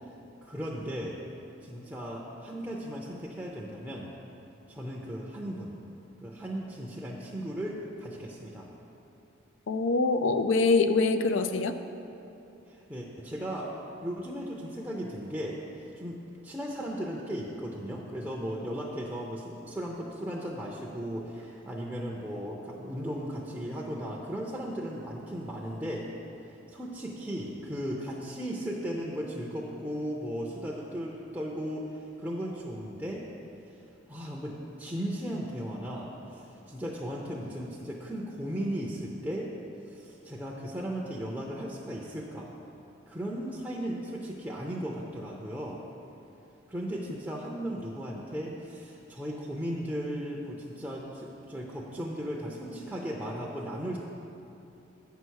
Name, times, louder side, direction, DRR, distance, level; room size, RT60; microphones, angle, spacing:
voice 1, 0.4-1.2 1.6-4.1 4.7-5.7 6.2-8.7 12.7-13.7 14.0-15.6 15.9-16.2 16.4-26.1 26.4-33.3 34.1-39.5 39.9-42.5 43.1-45.8 46.7-54.0, equal, 10° right, -3 dB, 0.6 m, -36 dB
voice 2, 9.7-11.8, left 3 dB, 75° left, 9 dB, 0.5 m, -24 dB
8.5 x 5.7 x 6.3 m, 2.9 s
head